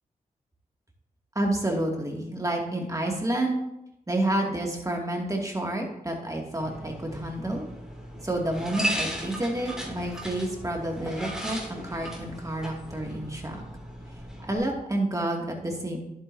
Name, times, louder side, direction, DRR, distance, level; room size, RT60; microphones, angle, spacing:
voice 1, 1.4-3.6 4.1-7.7 8.2-13.6 14.4-16.0, right 1 dB, 20° right, 0 dB, 2.3 m, -29 dB
sound 1, 6.6-14.6, equal, 5° right, 2.6 m, -36 dB
10.5 x 8.0 x 2.7 m, 0.84 s
cardioid pair, 50°, 15 cm